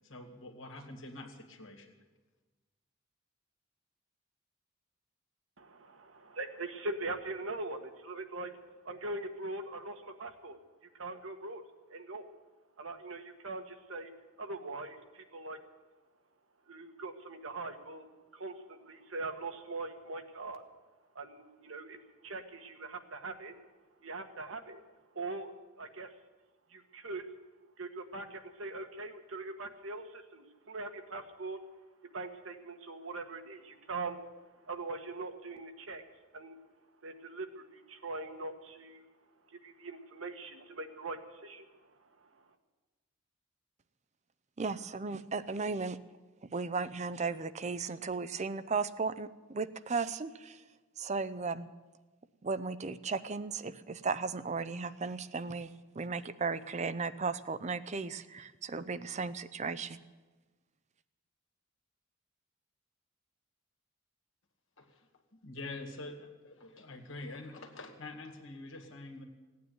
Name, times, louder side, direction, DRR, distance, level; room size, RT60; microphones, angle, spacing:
voice 1, 0.0-2.0 64.8-65.1 65.4-69.2, left 2 dB, 75° left, 4 dB, 2.2 m, -46 dB
voice 2, 5.6-8.5 8.8-10.6 10.9-11.6 11.9-12.2 12.8-14.1 14.4-15.6 16.7-18.1 18.3-20.6 21.1-22.0 22.2-23.5 24.0-24.8 25.1-25.5 25.8-26.1 26.7-27.2 27.8-31.6 32.1-36.0 36.3-36.6 37.0-39.0 39.5-41.9 42.2-42.4, right 2 dB, 80° right, 6 dB, 1.5 m, -42 dB
voice 3, 44.6-46.0 46.5-50.6 51.0-51.7 52.4-55.7 56.0-60.0, right 4 dB, 35° right, 13 dB, 0.5 m, -35 dB
16.0 x 9.5 x 9.4 m, 1.2 s
head